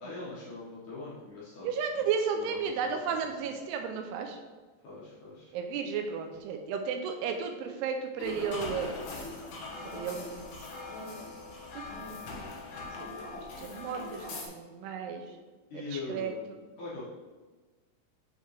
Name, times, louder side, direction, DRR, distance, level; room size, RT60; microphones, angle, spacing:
voice 1, 0.0-1.7 2.0-2.1 2.3-2.7 4.8-5.5 11.8-12.2 15.7-17.1, left 3 dB, 60° left, -8 dB, 2.2 m, -42 dB
voice 2, 1.6-4.4 5.5-9.0 9.8-10.5 11.7-11.8 13.0-15.4 15.9-16.6, right 6 dB, 85° right, 5 dB, 2.5 m, -34 dB
sound 1, 8.2-14.5, left 3 dB, 85° left, 1.5 m, -41 dB
7.1 x 5.4 x 3.3 m, 1.3 s
omnidirectional pair, 4.9 m